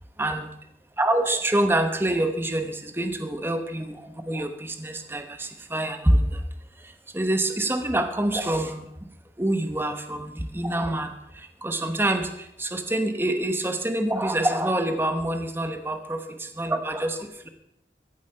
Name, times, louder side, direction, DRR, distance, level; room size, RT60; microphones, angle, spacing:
voice 1, 1.0-6.4 6.8-8.9 9.4-17.5, right 1 dB, 15° right, 7 dB, 1.0 m, -26 dB
15.0 x 10.5 x 5.7 m, 0.76 s
head